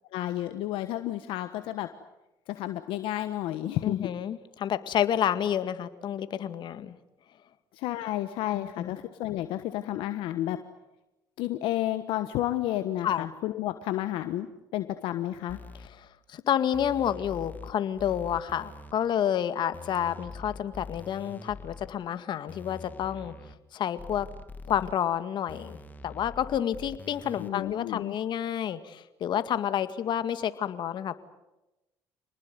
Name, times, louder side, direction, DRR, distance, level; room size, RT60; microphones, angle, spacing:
voice 1, 0.1-1.9 2.5-4.1 7.7-10.6 11.4-14.5 14.7-15.6 27.4-28.1, left 14 dB, 75° left, 10 dB, 1.3 m, -31 dB
voice 2, 3.8-7.0 8.5-8.9 13.0-13.3 16.0-23.3 23.7-24.3 24.7-25.8 26.0-31.2, left 9 dB, 60° left, 12 dB, 1.9 m, -29 dB
sound 1, 15.5-15.9 16.7-17.7 18.0-18.9 19.7-21.9 22.5-23.5 24.0-24.9 25.5-27.5, left 3 dB, 20° left, 2.6 m, -44 dB
27.5 x 20.0 x 9.6 m, 1.0 s
supercardioid pair, 70°, 9 cm